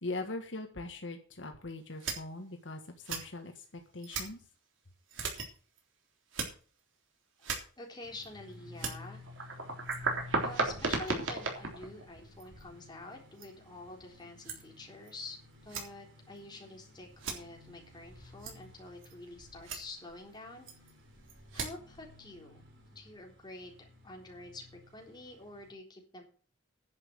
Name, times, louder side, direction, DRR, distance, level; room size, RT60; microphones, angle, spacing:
voice 1, 0.0-2.8 3.1-4.4, left 2 dB, 70° left, 4 dB, 1.6 m, -41 dB
sound 1, 2.0-2.2 3.0-3.2 4.0-4.3 5.1-5.5 5.8-5.9 6.3-6.5 7.4-7.6 8.2-8.3 8.8-12.6 13.4-13.5 14.4-14.6 15.1-15.2 15.7-15.8 17.2-17.3 18.4-18.5 19.0-19.1 19.6-19.8 20.7-20.9 21.3-21.7, right 3 dB, 85° right, 3.5 m, -35 dB
voice 2, 7.8-9.2 10.4-15.4 15.6-20.7 21.5-22.6 22.9-26.2, left 2 dB, 25° left, 0 dB, 3.8 m, -48 dB
sound 2, 8.0-25.7, left 2 dB, 70° right, 4.8 m, -53 dB
10.5 x 7.4 x 7.9 m, 0.40 s
head